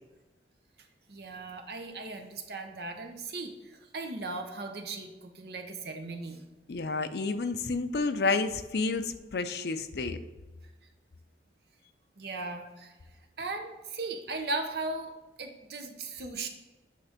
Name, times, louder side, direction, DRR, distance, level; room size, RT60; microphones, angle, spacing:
voice 1, 1.1-6.4 12.2-12.9 13.4-15.1 15.4-16.5, right 3 dB, 60° right, 4 dB, 0.8 m, -37 dB
voice 2, 6.7-10.2, left 3 dB, 65° left, 9 dB, 0.5 m, -30 dB
8.5 x 3.3 x 5.1 m, 1.2 s
head